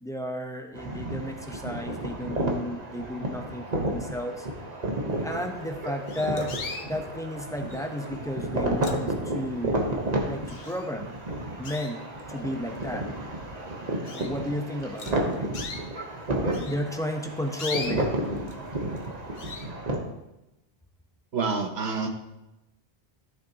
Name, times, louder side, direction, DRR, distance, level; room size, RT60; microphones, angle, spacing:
voice 1, 0.0-4.5 5.2-6.5 6.8-9.8 10.3-11.1 11.6-12.0 12.3-13.1 14.1-15.5 16.6-18.2, left 1 dB, 5° left, 3 dB, 0.7 m, -33 dB
sound 1, 0.7-20.0, right 1 dB, 40° right, 1.2 m, -32 dB
sound 2, 5.4-5.5 6.1-6.9 7.7-8.0 8.5-9.5 9.9-10.0 10.5-11.1 11.6-12.4 13.0-13.1 13.5-13.6 14.0-14.4 15.0-15.8 16.5-18.6 18.9-19.1 19.4-19.7, left 4 dB, 50° left, 0.9 m, -39 dB
voice 2, 21.3-22.1, right 4 dB, 75° right, 4 dB, 1.3 m, -27 dB
14.0 x 6.3 x 2.9 m, 0.94 s
omnidirectional pair, 1.1 m